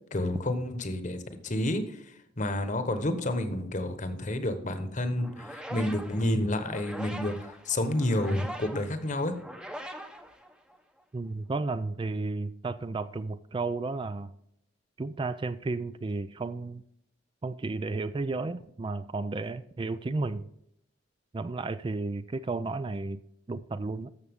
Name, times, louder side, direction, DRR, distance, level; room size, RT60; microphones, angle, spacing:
voice 1, 0.1-1.2 1.4-2.0 2.4-9.3, left 1 dB, 40° left, 9 dB, 1.1 m, -29 dB
sound 1, 5.2-11.0, right 1 dB, 5° right, 0.7 m, -43 dB
voice 2, 11.1-14.3 15.0-16.8 17.4-20.5 21.3-23.2 23.5-24.1, right 3 dB, 25° right, 13 dB, 0.3 m, -33 dB
13.0 x 6.8 x 3.6 m, 0.75 s
head